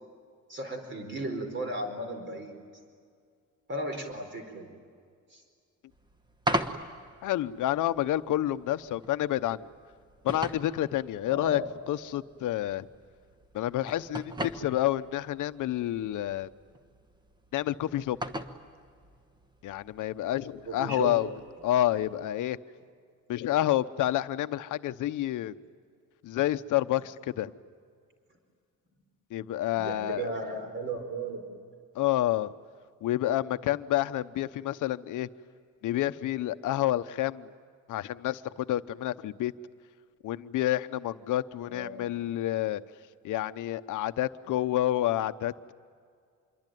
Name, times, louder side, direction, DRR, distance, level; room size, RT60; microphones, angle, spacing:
voice 1, 0.5-2.5 3.7-4.7 5.3-5.4 11.3-11.7 20.6-21.2 29.7-31.4 41.7-42.1, right 1 dB, 35° right, 6 dB, 4.5 m, -35 dB
sound 1, 5.9-22.2, right 1 dB, 15° right, 1.2 m, -40 dB
voice 2, 7.2-9.7 10.2-11.6 11.9-12.9 13.5-16.5 17.5-18.2 19.6-21.3 21.6-22.6 23.3-25.5 26.2-27.5 29.3-30.2 31.9-32.5 33.0-35.3 35.8-37.5 37.9-39.5 40.2-42.8 43.2-45.7, left 13 dB, 70° left, 12 dB, 0.9 m, -29 dB
26.5 x 23.0 x 9.3 m, 2.1 s
cardioid pair, 170°, 32 cm